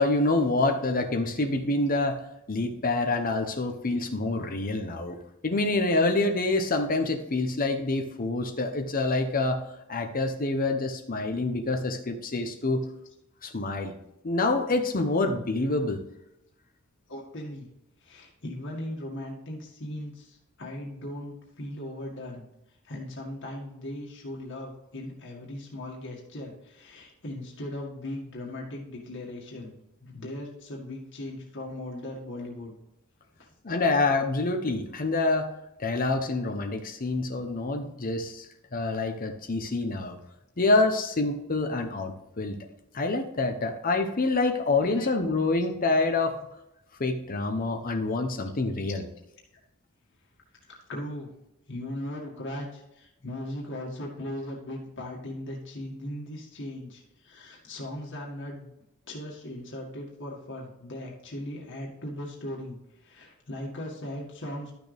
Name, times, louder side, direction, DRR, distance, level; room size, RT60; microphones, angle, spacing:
voice 1, 0.0-2.2 2.5-5.2 5.4-9.6 9.9-12.8 13.4-13.9 14.2-16.0 33.6-35.5 35.8-38.5 38.7-40.2 40.6-42.6 42.9-46.4 47.0-49.0, left 2 dB, 40° left, 5 dB, 0.9 m, -26 dB
voice 2, 17.1-17.7 18.0-29.7 30.0-32.7 33.4-33.5 44.9-45.1 50.7-51.3 51.7-58.7 59.1-64.7, left 1 dB, 60° left, -2 dB, 2.0 m, -38 dB
12.5 x 6.4 x 3.4 m, 0.87 s
head